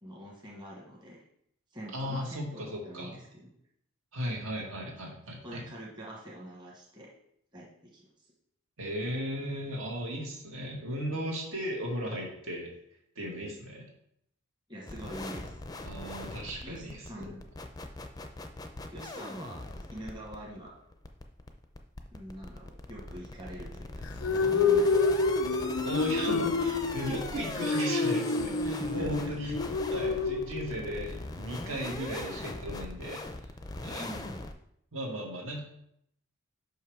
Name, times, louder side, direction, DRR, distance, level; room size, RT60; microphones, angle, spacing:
voice 1, 0.0-1.2 1.7-3.5 5.4-7.1 7.5-8.1 14.7-15.6 16.6-17.4 18.9-20.7 22.1-25.2 28.8-29.5 34.0-34.4, equal, 20° right, -3 dB, 1.1 m, -44 dB
voice 2, 1.9-3.2 4.1-5.6 8.8-12.7 13.2-13.9 15.8-17.3 25.8-29.6 29.9-33.2 33.8-34.1 34.9-35.6, equal, 75° right, -1 dB, 1.9 m, -36 dB
sound 1, 14.9-34.5, left 2 dB, 20° left, 0.4 m, -41 dB
sound 2, 24.0-31.1, left 4 dB, 75° left, 0.4 m, -28 dB
5.6 x 5.6 x 4.7 m, 0.72 s
head